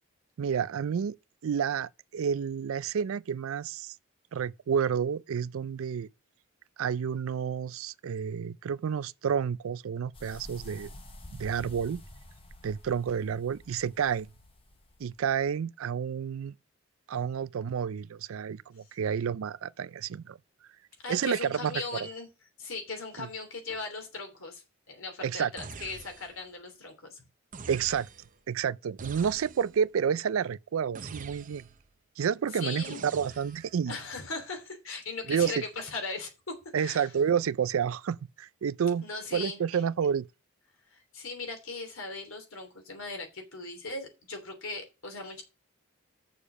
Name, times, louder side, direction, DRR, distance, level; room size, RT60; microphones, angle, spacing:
voice 1, 0.4-1.2 1.4-4.0 4.3-6.1 6.8-10.9 11.4-12.0 12.6-14.3 15.0-16.5 17.1-20.4 21.1-21.7 23.2-23.3 25.2-25.5 27.7-28.1 28.5-31.7 32.2-34.0 35.3-35.5 36.7-39.0 39.3-40.3, right 7 dB, 75° right, 0.4 m, -30 dB
sound 1, 10.1-15.5, left 1 dB, 25° left, 1.1 m, -49 dB
voice 2, 21.0-22.3 22.6-27.2 32.5-33.0 33.9-36.5 36.8-37.1 39.0-39.8 40.9-45.4, left 3 dB, 75° left, 3.1 m, -39 dB
sound 2, 25.6-26.5 27.5-28.4 29.0-29.9 31.0-31.9 32.8-33.8, right 4 dB, 35° right, 0.6 m, -45 dB
7.0 x 6.7 x 6.2 m
head